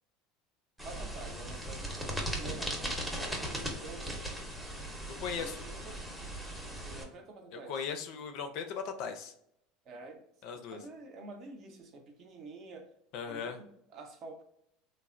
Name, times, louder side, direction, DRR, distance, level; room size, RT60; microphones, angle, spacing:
sound 1, 0.8-7.0, right 1 dB, 5° right, 0.7 m, -38 dB
voice 1, 0.8-2.8 3.1-4.2 5.4-6.0 6.7-7.8 9.9-10.2 10.7-12.9 13.3-14.4, right 3 dB, 45° right, 0.6 m, -48 dB
voice 2, 5.2-5.6 7.5-9.3 10.4-10.8 13.1-13.6, left 6 dB, 60° left, 0.4 m, -38 dB
3.2 x 2.1 x 2.4 m
supercardioid pair, 130°, 0 cm